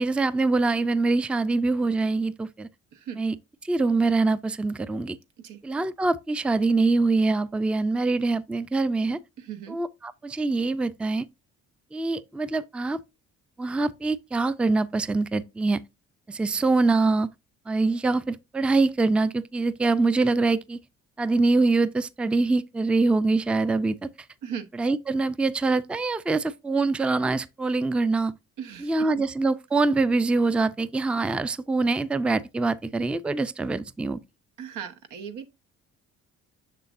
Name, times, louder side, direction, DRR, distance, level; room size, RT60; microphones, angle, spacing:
voice 1, 0.0-2.7 3.1-3.3 3.6-5.2 5.6-9.2 9.7-11.3 11.9-13.0 13.6-15.8 16.3-17.3 17.7-20.8 21.2-24.1 24.8-28.3 28.8-34.2, right 3 dB, 5° right, 0.4 m, -24 dB
voice 2, 9.4-9.8 24.4-24.7 28.6-29.2 34.6-35.5, right 8 dB, 85° right, 1.1 m, -37 dB
6.8 x 6.5 x 2.5 m
cardioid pair, 90°, 30 cm